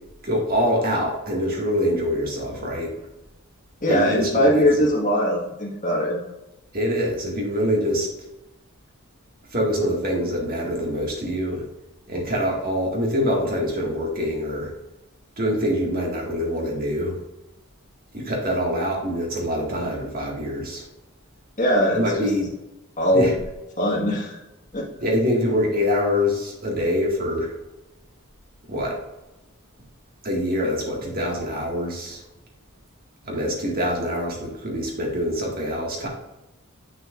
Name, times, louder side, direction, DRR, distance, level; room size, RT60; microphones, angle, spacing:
voice 1, 0.2-2.9 3.9-4.9 6.7-8.1 9.5-11.6 12.1-14.7 15.4-17.2 18.1-20.9 21.9-22.5 23.1-23.3 25.0-27.5 28.7-29.0 30.2-32.2 33.2-36.1, equal, 45° right, -1 dB, 1.8 m, -25 dB
voice 2, 3.8-6.2 21.6-22.3 23.0-23.3 23.8-24.4 24.7-24.8, equal, 35° left, -2 dB, 1.5 m, -21 dB
7.6 x 6.6 x 2.5 m, 0.98 s
head